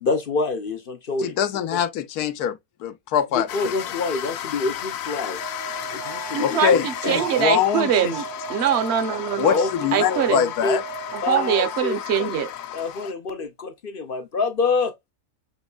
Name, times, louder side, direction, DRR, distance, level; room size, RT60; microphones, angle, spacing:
voice 1, 0.0-1.4 1.7-1.8 3.3-5.4 5.9-7.2 9.5-9.7 10.0-10.8 11.2-12.3 12.7-15.1, left 4 dB, 55° left, 0.6 m, -27 dB
voice 2, 1.2-3.5 6.4-8.1 9.4-10.8, left 9 dB, 85° left, 1.2 m, -23 dB
sound 1, 3.5-13.1, left 11 dB, 70° left, 1.0 m, -34 dB
Alarm, 5.1-12.1, right 6 dB, 80° right, 1.8 m, -38 dB
voice 3, 6.3-9.5 9.9-10.5 11.1-12.5, right 8 dB, 50° right, 1.0 m, -23 dB
6.1 x 3.1 x 2.3 m
omnidirectional pair, 1.6 m